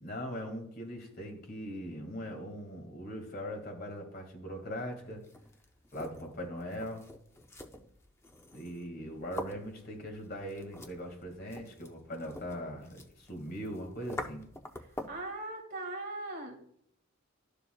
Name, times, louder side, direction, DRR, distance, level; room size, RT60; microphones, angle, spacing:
voice 1, 0.0-5.2 5.9-7.0 8.5-14.4, equal, 45° left, 3 dB, 1.9 m, -40 dB
sound 1, 5.1-15.3, left 1 dB, 15° left, 0.5 m, -46 dB
voice 2, 14.8-16.6, right 2 dB, 45° right, 2 dB, 2.1 m, -40 dB
12.0 x 6.9 x 2.3 m, 0.69 s
head